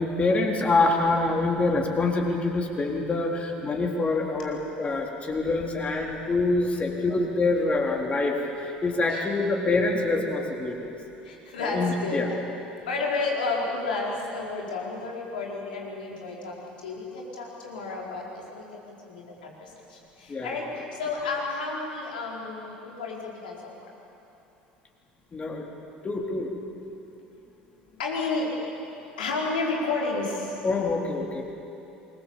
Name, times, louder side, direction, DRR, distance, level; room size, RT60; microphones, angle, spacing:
voice 1, 0.0-10.9 11.6-12.4 20.3-20.6 25.3-25.7 26.0-26.5 30.6-31.5, left 3 dB, 25° left, 0 dB, 3.9 m, -26 dB
voice 2, 11.3-12.2 12.8-18.2 18.5-19.5 19.9-20.6 21.0-23.7 28.0-28.5 29.2-30.6, left 3 dB, 70° left, -2 dB, 4.6 m, -31 dB
28.0 x 22.0 x 7.2 m, 2.9 s
figure-of-eight pair, 65°, 5 cm